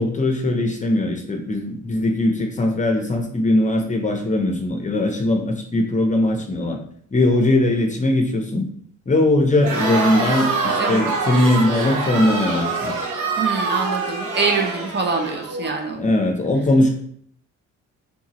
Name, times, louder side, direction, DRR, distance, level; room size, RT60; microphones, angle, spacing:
voice 1, 0.0-6.8 7.1-8.7 9.1-13.0 16.0-16.9, left 1 dB, 25° left, 3 dB, 0.6 m, -20 dB
Crowd, 9.6-15.8, right 3 dB, 80° right, 1.2 m, -25 dB
voice 2, 13.4-16.0, right 4 dB, 35° right, 4 dB, 0.7 m, -24 dB
3.8 x 3.7 x 3.0 m, 0.62 s
cardioid pair, 90°, 30 cm